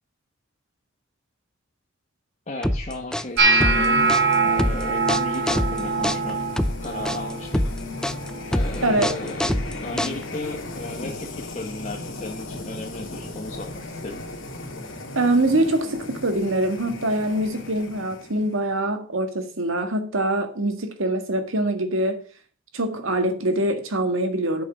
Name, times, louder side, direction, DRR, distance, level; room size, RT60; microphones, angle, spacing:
voice 1, 2.5-4.1 4.4-6.4 6.8-7.6 8.5-9.5 9.8-14.2, left 2 dB, 35° left, 1.4 m, -35 dB
sound 1, 2.6-10.5, left 1 dB, 5° left, 0.4 m, -25 dB
sound 2, 3.3-18.7, left 2 dB, 80° left, 2.5 m, -38 dB
sound 3, 3.4-9.5 9.7-10.3 10.6-11.1 11.8-12.0 13.7-13.8, right 3 dB, 65° right, 5.1 m, -24 dB
voice 2, 8.8-9.1 15.2-22.2 22.7-24.6, right 1 dB, 90° right, 1.7 m, -24 dB
8.4 x 6.3 x 6.0 m
head